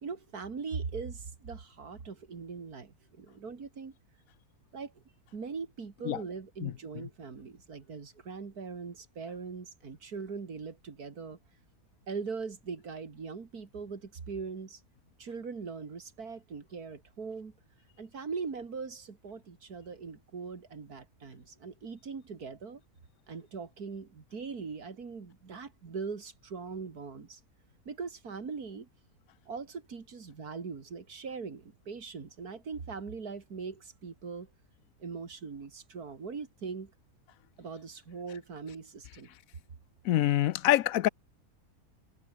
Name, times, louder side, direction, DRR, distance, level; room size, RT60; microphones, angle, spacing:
voice 1, 0.0-4.0 4.7-5.0 5.3-11.4 12.1-14.8 15.2-17.5 18.0-22.8 23.3-27.4 27.9-28.9 29.5-34.5 35.0-36.9 37.6-39.3, right 5 dB, 80° right, 2.9 m, -41 dB
voice 2, 40.1-41.1, left 13 dB, 70° left, 1.0 m, -25 dB
omnidirectional pair, 1.6 m